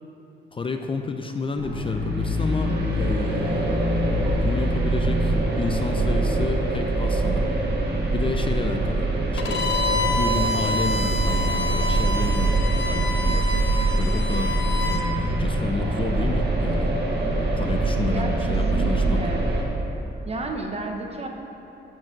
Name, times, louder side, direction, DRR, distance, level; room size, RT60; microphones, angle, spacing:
voice 1, 0.5-4.1 4.4-7.5 8.1-9.6 10.1-12.6 12.9-13.5 14.0-14.6 14.9-16.9 17.5-19.2, left 4 dB, 30° left, 5 dB, 0.5 m, -30 dB
sound 1, 1.5-19.6, right 2 dB, 65° right, 1.7 m, -24 dB
Bowed string instrument, 9.4-15.1, left 1 dB, 90° left, 0.8 m, -28 dB
voice 2, 18.1-19.4 20.3-21.3, right 2 dB, 35° right, 2 dB, 0.9 m, -31 dB
12.5 x 4.6 x 5.9 m, 2.9 s
wide cardioid pair, 130°, 18 cm